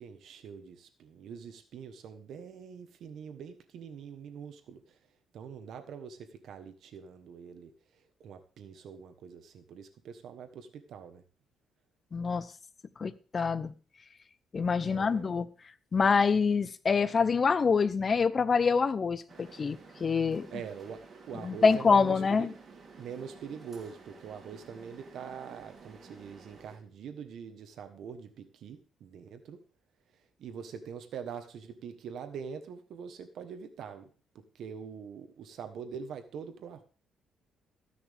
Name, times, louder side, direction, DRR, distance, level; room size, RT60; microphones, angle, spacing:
voice 1, 0.0-5.0 5.3-7.7 8.2-11.2 14.8-15.4 20.5-22.5 23.0-29.6 30.4-34.1 34.5-36.8, right 7 dB, 70° right, 1.2 m, -44 dB
voice 2, 12.1-12.5 13.0-13.7 14.5-15.5 15.9-20.5 21.4-22.5, left 5 dB, 35° left, 0.8 m, -26 dB
sound 1, 19.3-26.8, right 4 dB, 40° right, 3.2 m, -52 dB
14.5 x 10.0 x 3.5 m
cardioid pair, 110°, 0 cm